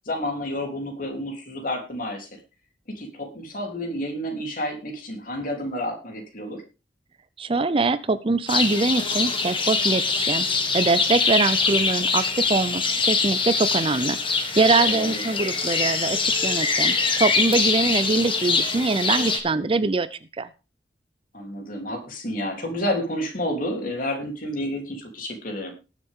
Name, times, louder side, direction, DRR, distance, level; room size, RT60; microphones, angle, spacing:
voice 1, 0.0-2.4 2.9-6.6 14.9-15.2 21.3-25.7, left 1 dB, 50° left, 2 dB, 3.4 m, -30 dB
voice 2, 7.4-10.5 10.7-14.2 14.6-20.5, right 3 dB, 30° right, 14 dB, 0.6 m, -23 dB
sound 1, 8.5-19.4, left 4 dB, 30° left, 1.9 m, -23 dB
19.5 x 7.4 x 3.7 m, 0.31 s
head